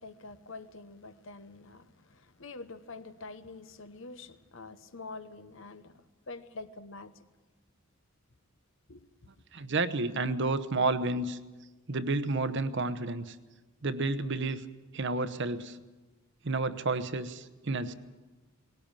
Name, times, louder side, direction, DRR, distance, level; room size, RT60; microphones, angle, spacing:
voice 1, 0.0-7.1 8.9-9.1, left 3 dB, 60° left, 1.0 m, -46 dB
voice 2, 9.5-11.4 11.9-13.3 13.8-14.6 14.9-15.8 16.4-17.9, right 3 dB, 55° right, 1.0 m, -30 dB
19.0 x 17.5 x 9.0 m
head